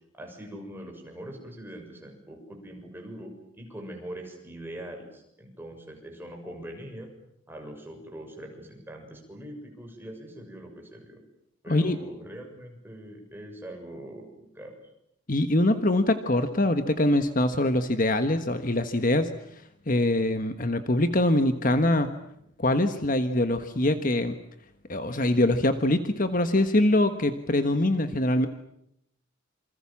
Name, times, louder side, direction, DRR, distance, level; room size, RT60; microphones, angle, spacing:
voice 1, 0.1-7.1 7.5-11.2 11.6-14.7, right 1 dB, 10° right, 2 dB, 6.8 m, -42 dB
voice 2, 15.3-19.3 19.9-22.1 22.6-24.4 24.9-28.5, left 1 dB, 40° left, 9 dB, 1.4 m, -23 dB
28.0 x 26.0 x 7.4 m, 0.77 s
head